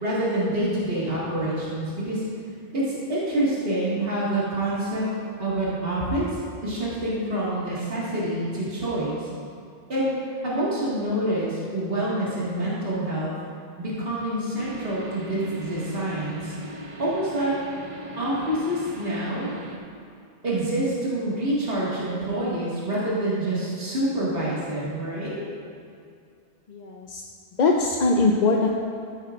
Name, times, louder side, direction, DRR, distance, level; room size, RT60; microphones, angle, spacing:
voice 1, 0.0-2.2 2.7-5.1 5.4-6.3 6.6-9.3 9.9-10.1 10.4-13.3 13.8-16.6 17.0-17.6 18.2-19.5 20.4-25.5, right 1 dB, 70° right, -8 dB, 2.2 m, -27 dB
sound 1, 14.6-19.8, equal, 35° right, 0.8 m, -39 dB
voice 2, 26.7-27.2 27.6-28.7, left 3 dB, 50° left, 0 dB, 0.7 m, -21 dB
14.5 x 8.8 x 2.5 m, 2.4 s
omnidirectional pair, 1.0 m